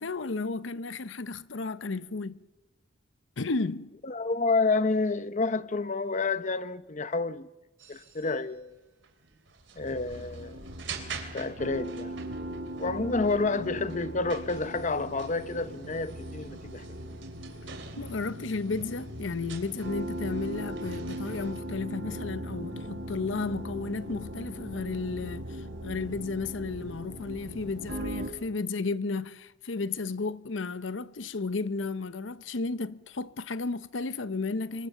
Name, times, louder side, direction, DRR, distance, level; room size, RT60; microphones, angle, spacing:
voice 1, 0.0-2.4 3.4-4.0 18.0-34.9, left 3 dB, 75° left, 0.8 m, -33 dB
voice 2, 4.0-7.5 7.9-8.8 9.8-10.6 11.3-12.2 12.8-16.8, left 3 dB, 40° left, 0.9 m, -29 dB
sound 1, 7.8-21.6, right 5 dB, 70° right, 3.7 m, -47 dB
sound 2, 9.8-28.3, right 1 dB, 85° right, 6.0 m, -39 dB
26.0 x 23.5 x 6.8 m
head